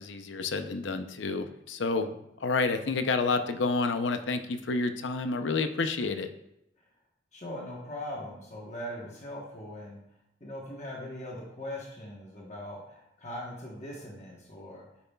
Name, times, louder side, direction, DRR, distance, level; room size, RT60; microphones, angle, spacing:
voice 1, 0.0-2.1 2.4-6.3, left 3 dB, 75° left, 8 dB, 0.6 m, -29 dB
voice 2, 7.3-10.0 10.4-14.9, left 1 dB, 40° left, -3 dB, 1.1 m, -40 dB
9.5 x 6.9 x 2.3 m, 0.82 s
head